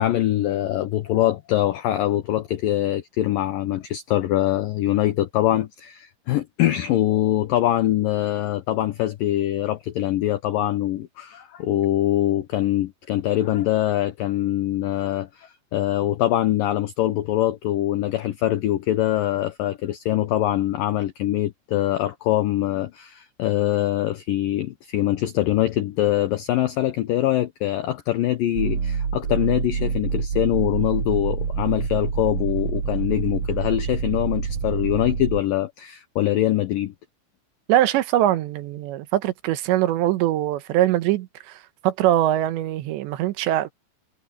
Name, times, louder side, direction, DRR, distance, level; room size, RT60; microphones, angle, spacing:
voice 1, 0.0-36.9, left 13 dB, 80° left, 2.0 m, -23 dB
sound 1, 28.5-35.4, right 6 dB, 50° right, 3.6 m, -27 dB
voice 2, 37.7-43.7, right 13 dB, 80° right, 3.3 m, -22 dB
omnidirectional pair, 5.2 m